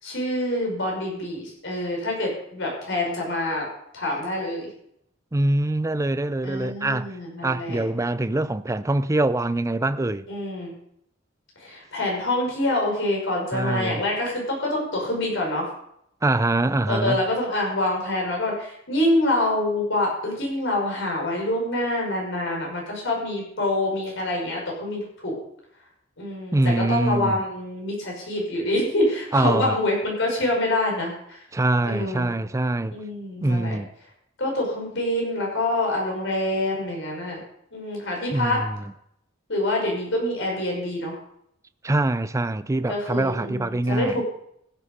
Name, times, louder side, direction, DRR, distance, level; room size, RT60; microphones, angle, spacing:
voice 1, 0.0-3.7 3.9-4.7 6.4-7.8 10.3-10.7 11.6-15.7 16.9-25.4 26.2-31.4 31.8-32.3 32.9-33.8 34.4-37.4 37.7-38.7 39.5-41.2 42.9-44.3, left 1 dB, 65° left, 5.7 m, -26 dB
voice 2, 5.3-7.1 7.4-10.3 13.5-14.0 16.2-17.2 26.5-27.4 29.3-29.8 31.5-33.0 33.4-33.9 38.3-38.9 41.8-44.2, right 2 dB, 15° right, 0.4 m, -24 dB
15.5 x 8.2 x 5.2 m
head